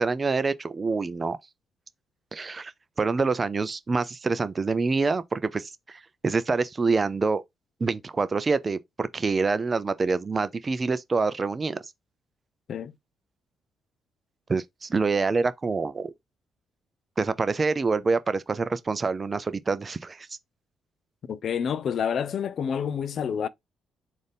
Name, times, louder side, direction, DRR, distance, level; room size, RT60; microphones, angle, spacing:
voice 1, 0.0-1.4 2.3-2.7 3.0-7.4 7.8-11.8 14.5-16.1 17.2-20.3, right 4 dB, 30° right, 0.5 m, -26 dB
voice 2, 21.3-23.5, left 7 dB, 60° left, 0.4 m, -28 dB
4.1 x 2.6 x 3.4 m
cardioid pair, 90°, 0 cm